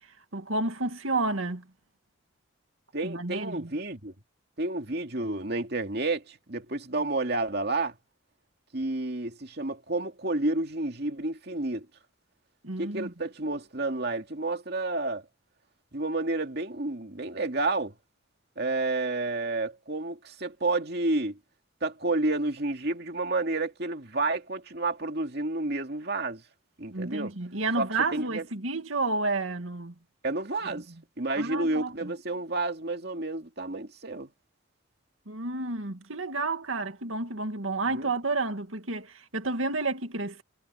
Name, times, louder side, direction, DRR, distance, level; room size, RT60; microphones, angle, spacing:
voice 1, 0.3-1.6 3.0-3.7 12.6-13.1 26.9-29.9 31.4-32.1 35.3-40.4, right 3 dB, 90° right, 2.2 m, -30 dB
voice 2, 2.9-4.1 4.6-7.9 8.7-11.9 12.8-15.2 15.9-17.9 18.6-21.4 21.8-26.4 26.8-27.3 27.8-28.4 30.2-30.9 31.2-34.3 37.9-38.1, right 2 dB, 55° right, 2.5 m, -30 dB
head